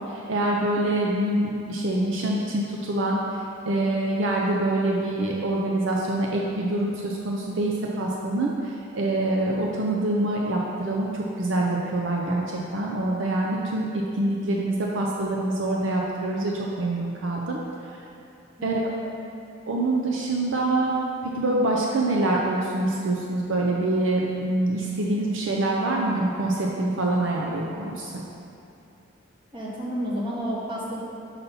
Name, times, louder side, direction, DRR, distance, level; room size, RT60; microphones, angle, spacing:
voice 1, 0.1-17.6 18.6-18.8 19.7-28.1, right 2 dB, 60° right, -2 dB, 0.5 m, -25 dB
voice 2, 18.6-19.0 29.5-31.0, equal, 25° right, -6 dB, 1.1 m, -30 dB
5.7 x 4.2 x 5.4 m, 2.7 s
head